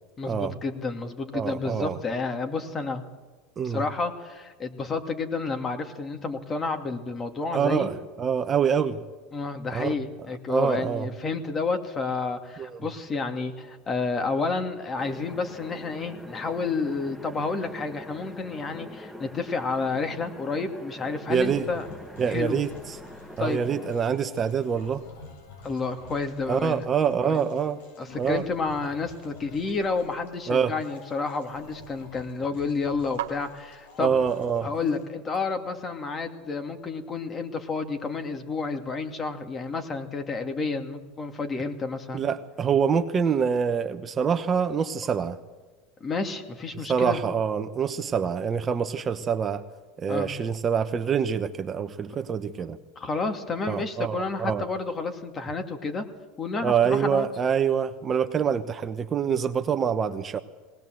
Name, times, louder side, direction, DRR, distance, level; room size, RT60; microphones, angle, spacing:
voice 1, 0.2-3.0 3.6-7.9 9.3-21.9 22.3-22.6 23.4-23.6 25.6-26.8 27.2-27.4 28.0-34.1 34.6-42.2 46.0-47.2 50.1-50.3 52.6-52.7 53.0-56.0 56.4-57.3 58.4-58.5, left 4 dB, 25° left, 6 dB, 2.5 m, -30 dB
voice 2, 1.3-2.0 3.6-3.8 7.5-9.0 9.7-9.9 10.5-11.1 12.6-12.8 21.3-21.7 22.2-23.0 23.4-25.0 26.5-27.8 28.2-28.4 30.5-30.7 34.0-34.7 42.1-45.4 46.9-49.6 50.0-52.8 53.7-54.6 56.6-60.4, right 7 dB, 30° right, 9 dB, 1.0 m, -25 dB
sound 1, 15.0-24.0, left 1 dB, 5° left, 1.5 m, -44 dB
sound 2, 21.3-35.0, left 3 dB, 80° left, 7.9 m, -48 dB
sound 3, 31.1-36.0, right 12 dB, 80° right, 1.7 m, -44 dB
20.0 x 18.5 x 7.8 m, 1.3 s
supercardioid pair, 110°, 0 cm